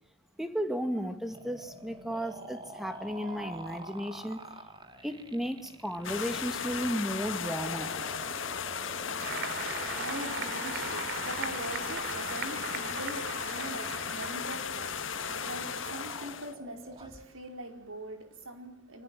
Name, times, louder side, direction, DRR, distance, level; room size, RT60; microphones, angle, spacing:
voice 1, 0.4-4.4 5.0-7.9, equal, ahead, 8 dB, 2.1 m, -34 dB
sound 1, 1.3-17.2, right 2 dB, 25° right, 2.3 m, -47 dB
sound 2, 6.0-16.5, left 6 dB, 65° left, 1.8 m, -36 dB
Applause, 9.2-14.9, right 5 dB, 55° right, 3.1 m, -40 dB
voice 2, 9.3-19.0, right 1 dB, 75° right, 5 dB, 4.7 m, -43 dB
27.5 x 25.0 x 7.8 m, 0.65 s
head